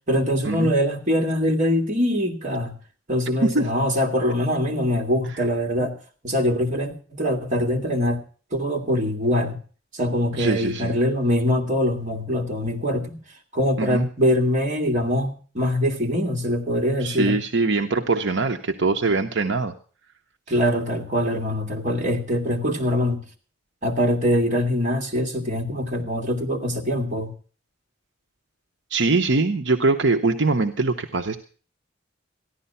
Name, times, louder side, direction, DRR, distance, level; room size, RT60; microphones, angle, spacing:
voice 1, 0.1-2.8 3.1-5.9 6.2-8.2 8.5-9.6 9.9-13.2 13.5-17.4 20.5-23.3 23.8-27.3, equal, 40° right, 1 dB, 2.2 m, -23 dB
voice 2, 10.3-10.9 13.8-14.1 17.0-19.7 28.9-31.4, right 3 dB, 65° right, 5 dB, 0.8 m, -22 dB
14.5 x 11.0 x 5.5 m, 0.40 s
head